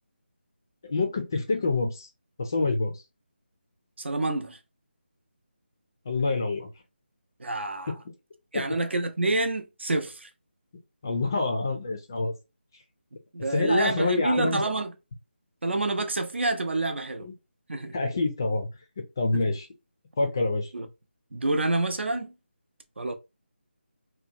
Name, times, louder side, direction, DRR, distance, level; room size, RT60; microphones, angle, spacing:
voice 1, 0.8-2.1 2.4-2.9 6.1-6.7 11.0-12.3 13.5-14.6 17.2-17.3 17.9-18.7 19.2-19.7 20.2-20.7, left 3 dB, 20° left, 0.3 m, -26 dB
voice 2, 4.0-4.6 7.4-8.0 8.5-10.3 13.3-14.9 15.6-17.3 17.7-18.0 20.7-20.9 21.3-22.3 23.0-23.1, right 2 dB, 75° right, 0.7 m, -28 dB
2.9 x 2.1 x 2.5 m
figure-of-eight pair, 175°, 6 cm